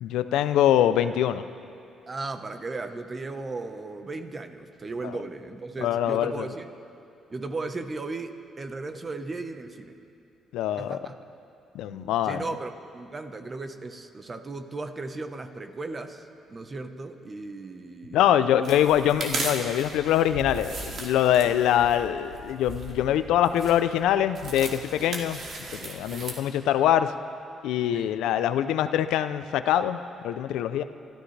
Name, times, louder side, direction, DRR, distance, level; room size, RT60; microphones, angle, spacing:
voice 1, 0.0-1.4 5.0-5.1 5.8-6.5 10.5-11.0 11.7-12.4 18.1-25.4 25.7-27.1 27.6-30.8, left 11 dB, 90° left, 11 dB, 0.5 m, -24 dB
voice 2, 2.1-6.7 7.3-10.0 10.8-11.1 11.9-18.7 21.4-21.5 25.0-25.1 26.1-26.3 27.9-28.1, right 3 dB, 30° right, 7 dB, 1.1 m, -36 dB
sound 1, 18.6-26.4, right 3 dB, 60° right, 2.5 m, -37 dB
29.0 x 14.0 x 3.3 m, 2.6 s
cardioid pair, 90°, 0 cm